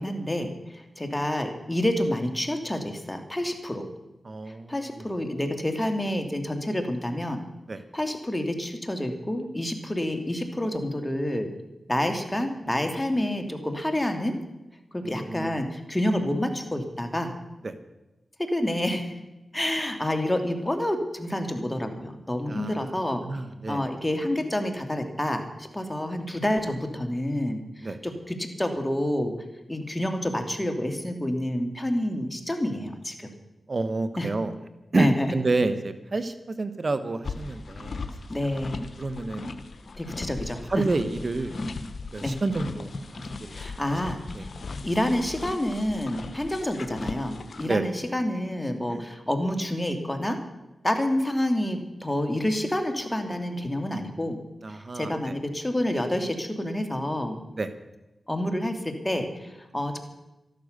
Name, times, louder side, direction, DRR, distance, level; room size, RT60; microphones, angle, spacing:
voice 1, 0.0-3.9 4.7-7.4 7.9-11.5 11.9-14.4 14.9-17.3 18.4-19.2 19.5-23.2 23.7-27.6 28.0-29.4 29.7-33.3 34.2-34.3 35.0-35.3 38.3-38.8 40.0-40.8 42.2-42.4 43.5-44.5 44.8-50.4 50.8-54.4 54.7-57.4 58.3-60.0, left 1 dB, 15° left, 5 dB, 2.7 m, -28 dB
voice 2, 4.2-5.1 7.7-7.8 15.0-15.6 17.6-17.7 22.5-22.9 23.2-23.9 27.8-28.0 33.7-34.5 34.9-38.0 39.0-39.5 40.7-41.5 42.1-44.0 44.3-44.4 47.6-47.9 48.9-49.0 54.6-55.4 57.5-57.7, right 3 dB, 55° right, 11 dB, 1.1 m, -29 dB
sound 1, 37.2-47.7, left 3 dB, 65° left, 1.2 m, -38 dB
13.5 x 12.0 x 6.7 m, 0.99 s
cardioid pair, 45°, 0 cm